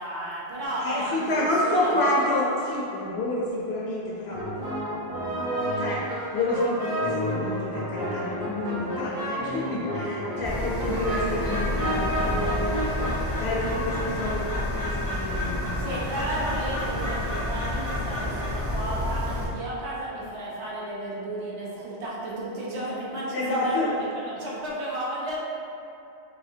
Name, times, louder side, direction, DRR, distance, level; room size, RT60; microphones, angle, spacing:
voice 1, 0.0-2.4 15.5-25.4, right 1 dB, 80° right, -6 dB, 1.1 m, -33 dB
voice 2, 0.8-4.4 5.8-12.9 13.4-16.0 23.3-23.9, left 1 dB, 70° left, -4 dB, 0.8 m, -29 dB
sound 1, 4.3-14.0, equal, 35° right, 1.5 m, -30 dB
Bird, 10.4-19.4, left 1 dB, 20° left, 0.4 m, -29 dB
5.4 x 2.8 x 2.7 m, 2.7 s
omnidirectional pair, 1.1 m